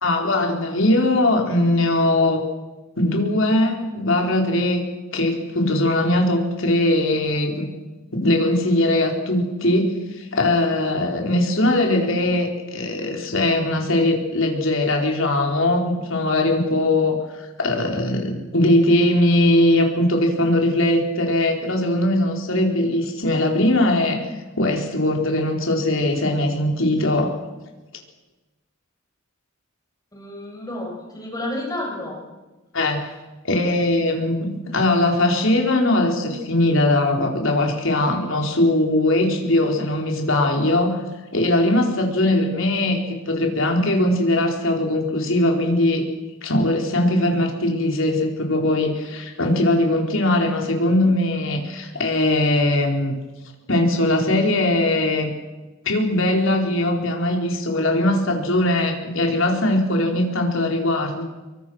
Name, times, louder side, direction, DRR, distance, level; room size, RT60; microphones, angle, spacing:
voice 1, 0.0-2.4 3.0-4.8 5.1-7.7 8.1-24.2 24.6-27.4 32.7-33.1 33.4-41.0 41.3-46.0 46.4-53.1 53.7-55.3 55.8-61.2, left 1 dB, 65° left, 2 dB, 4.4 m, -20 dB
voice 2, 30.1-32.1, left 1 dB, 20° left, -2 dB, 7.8 m, -30 dB
25.5 x 23.5 x 6.4 m, 1.1 s
head